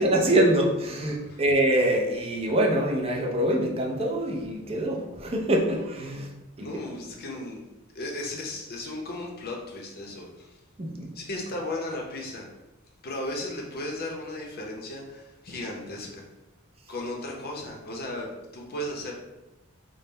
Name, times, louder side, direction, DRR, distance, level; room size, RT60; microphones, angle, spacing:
voice 1, 0.0-6.3 6.6-6.7 10.8-11.1, right 1 dB, 30° right, 0 dB, 0.5 m, -24 dB
voice 2, 6.6-7.6 7.9-10.6 11.1-12.5 13.0-16.3 16.9-19.1, left 1 dB, 50° left, 0 dB, 0.7 m, -35 dB
3.8 x 2.1 x 3.8 m, 1.0 s
head